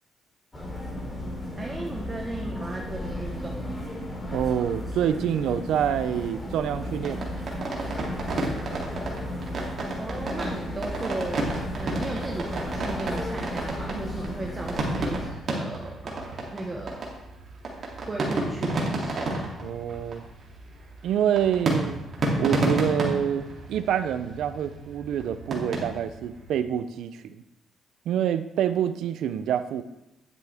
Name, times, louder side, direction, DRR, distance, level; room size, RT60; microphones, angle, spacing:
sound 1, 0.5-15.2, left 1 dB, 20° left, 3.7 m, -34 dB
voice 1, 1.6-3.8 10.0-11.5 11.7-17.1 18.1-19.1, right 2 dB, 25° right, 0 dB, 1.3 m, -35 dB
voice 2, 4.3-7.2 19.6-20.2 21.0-22.0 22.4-27.4 28.1-29.8, right 9 dB, 80° right, 12 dB, 0.6 m, -27 dB
sound 2, 7.0-26.5, right 2 dB, 50° right, 2.9 m, -31 dB
11.0 x 8.4 x 3.6 m, 0.92 s
cardioid pair, 90°, 0 cm